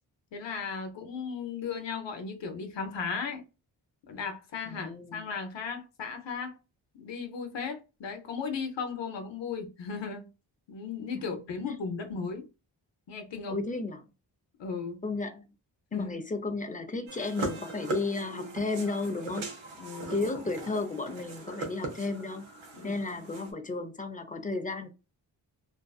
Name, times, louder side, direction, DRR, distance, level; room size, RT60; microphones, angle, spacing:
voice 1, 0.3-3.5 4.0-6.6 6.9-10.2 10.7-12.5 13.1-13.6 14.6-15.0 15.9-16.2 19.8-20.3 22.7-22.9, left 5 dB, 70° left, 0.7 m, -36 dB
voice 2, 4.6-5.3 11.1-11.2 13.5-14.1 15.0-15.4 15.9-19.5 20.1-22.5 22.8-24.9, left 3 dB, 20° left, 0.5 m, -33 dB
sound 1, 17.1-23.5, right 3 dB, 85° right, 0.9 m, -40 dB
2.6 x 2.4 x 2.3 m
cardioid pair, 50°, 46 cm